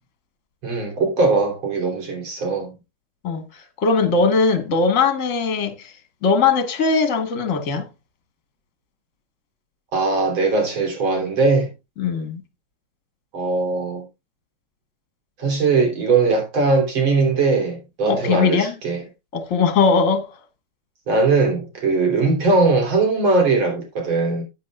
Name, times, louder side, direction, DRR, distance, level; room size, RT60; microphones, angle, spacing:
voice 1, 0.6-2.7 9.9-11.7 13.3-14.0 15.4-19.0 21.1-24.4, right 3 dB, 70° right, 4.0 m, -20 dB
voice 2, 3.2-5.9 6.2-7.8 12.0-12.4 18.0-18.8 19.3-20.4, left 4 dB, 40° left, 1.7 m, -20 dB
12.0 x 9.3 x 2.3 m
omnidirectional pair, 2.3 m